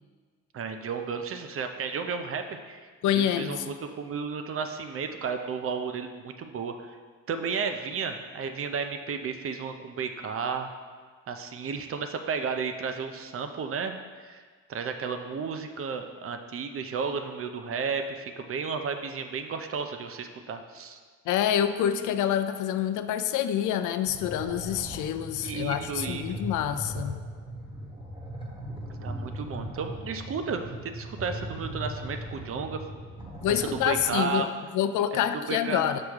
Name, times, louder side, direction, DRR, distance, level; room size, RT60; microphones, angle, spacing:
voice 1, 0.5-2.9 3.1-7.0 7.3-10.7 11.3-14.4 14.7-21.0 25.4-26.2 29.0-32.8 33.5-34.5 35.3-35.9, right 5 dB, 50° right, 7 dB, 0.6 m, -33 dB
voice 2, 3.0-3.6 21.3-27.2 33.4-34.5 34.7-36.0, left 10 dB, 80° left, 10 dB, 0.5 m, -27 dB
sound 1, 24.1-34.1, equal, 15° right, 1.4 m, -38 dB
6.2 x 4.9 x 3.6 m, 1.5 s
cardioid pair, 90°, 30 cm